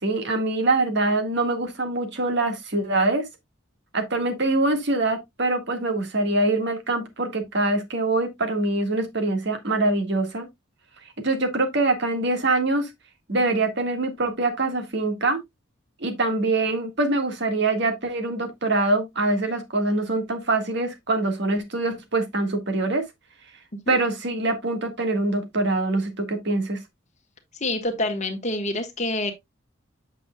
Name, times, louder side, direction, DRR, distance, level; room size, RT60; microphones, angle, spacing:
voice 1, 0.0-3.3 3.9-10.5 11.2-12.9 13.3-15.4 16.0-23.0 23.9-26.8, right 2 dB, 60° right, 1.8 m, -24 dB
voice 2, 27.6-29.3, left 2 dB, 35° left, 1.5 m, -27 dB
8.3 x 6.8 x 2.3 m
head